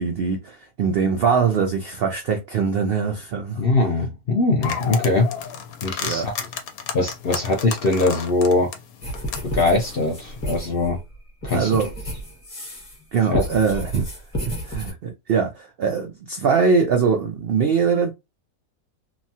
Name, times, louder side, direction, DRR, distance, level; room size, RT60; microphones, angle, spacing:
voice 1, 0.0-3.6 6.0-6.3 11.5-11.9 13.1-14.1 14.5-18.1, right 5 dB, 75° right, 0.5 m, -22 dB
voice 2, 3.6-5.3 5.8-6.3 6.9-8.7 9.4-11.0 11.4-11.8 13.3-13.4, left 2 dB, 60° left, 0.6 m, -21 dB
sound 1, 4.6-10.6, left 7 dB, 85° left, 1.1 m, -33 dB
sound 2, 9.0-13.0 13.3-14.9, equal, 25° left, 1.0 m, -31 dB
2.9 x 2.2 x 2.7 m
omnidirectional pair, 1.5 m